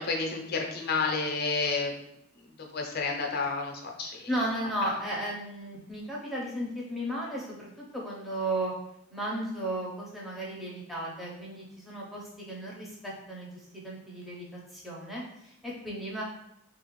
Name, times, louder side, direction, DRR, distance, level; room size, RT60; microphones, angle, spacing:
voice 1, 0.0-1.9 2.6-4.3, left 4 dB, 45° left, 1 dB, 0.5 m, -30 dB
voice 2, 4.3-8.7 9.1-14.5 14.7-16.2, right 1 dB, ahead, -5 dB, 0.6 m, -35 dB
3.3 x 2.4 x 3.0 m, 0.80 s
head